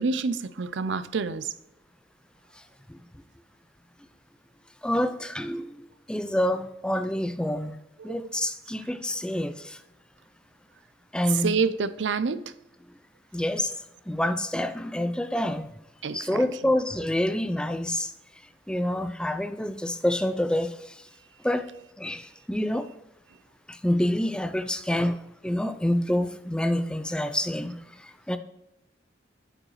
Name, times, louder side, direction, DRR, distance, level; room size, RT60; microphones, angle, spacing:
voice 1, 0.0-1.5 8.0-8.3 11.3-12.5 16.0-16.2 16.6-16.7, right 5 dB, 90° right, 0.5 m, -27 dB
voice 2, 4.8-7.8 8.0-9.8 11.1-11.5 13.3-13.7 14.1-15.7 16.1-18.1 18.7-21.0 21.4-21.7 22.0-22.9 23.7-28.4, left 1 dB, 5° left, 0.4 m, -27 dB
8.7 x 5.0 x 3.1 m
head